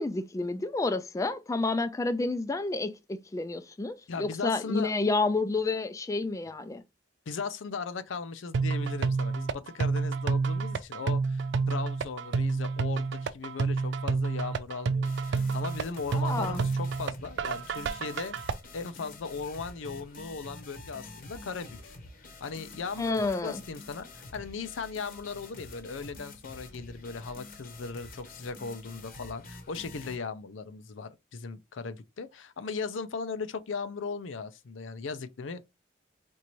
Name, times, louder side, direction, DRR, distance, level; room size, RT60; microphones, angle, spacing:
voice 1, 0.0-6.8 16.2-16.6 23.0-23.6, left 3 dB, 15° left, 0.3 m, -30 dB
voice 2, 4.1-4.9 7.3-18.3 18.7-21.8 22.4-35.7, left 4 dB, 85° left, 0.5 m, -38 dB
sound 1, 8.5-18.5, right 4 dB, 65° right, 0.4 m, -29 dB
sound 2, 15.0-30.2, left 2 dB, 50° left, 0.9 m, -48 dB
4.5 x 2.6 x 2.9 m
head